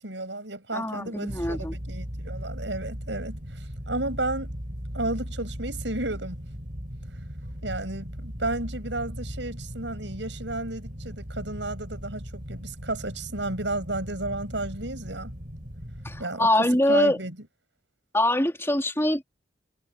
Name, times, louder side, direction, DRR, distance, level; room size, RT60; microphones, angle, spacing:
voice 1, 0.0-4.5 4.9-6.4 7.6-15.3 16.2-16.5 16.9-17.4, right 2 dB, 70° right, 7.5 m, -32 dB
voice 2, 0.7-1.8 16.0-17.2 18.1-19.2, left 1 dB, 15° left, 3.6 m, -24 dB
sound 1, 1.3-16.2, equal, 45° right, 6.0 m, -38 dB
head